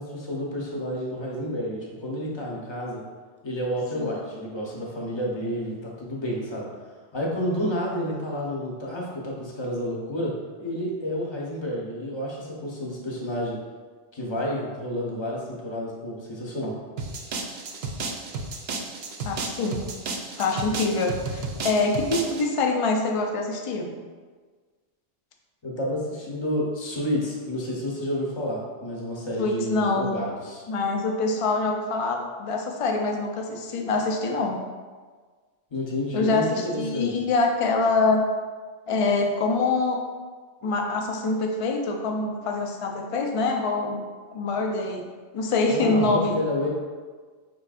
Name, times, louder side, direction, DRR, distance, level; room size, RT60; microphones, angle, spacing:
voice 1, 0.0-3.0 3.4-6.7 7.1-13.6 14.1-16.8 25.6-30.7 35.7-37.3 45.7-46.7, equal, 25° left, -3 dB, 0.8 m, -30 dB
sound 1, 17.0-22.5, right 3 dB, 65° right, 0.8 m, -33 dB
voice 2, 19.2-19.8 20.4-23.9 29.4-30.1 30.7-34.6 36.1-38.2 38.9-40.0 40.6-44.0 44.3-45.0 45.3-46.4, left 3 dB, 50° left, 2 dB, 0.4 m, -25 dB
5.6 x 3.8 x 2.4 m, 1.5 s
omnidirectional pair, 1.2 m